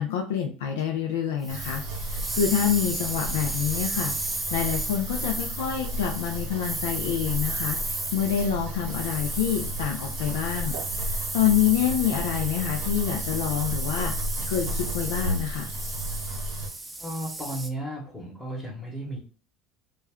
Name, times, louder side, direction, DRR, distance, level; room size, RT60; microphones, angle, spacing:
voice 1, 0.0-14.1 14.5-15.7, left 9 dB, 85° left, 2 dB, 0.4 m, -27 dB
sound 1, 1.4-17.7, right 2 dB, 10° right, 0.4 m, -34 dB
sound 2, 1.5-16.7, right 1 dB, 80° right, 0.8 m, -34 dB
voice 2, 17.0-19.2, right 1 dB, 15° left, -4 dB, 1.0 m, -34 dB
2.3 x 2.1 x 3.5 m, 0.40 s
supercardioid pair, 100°, 0 cm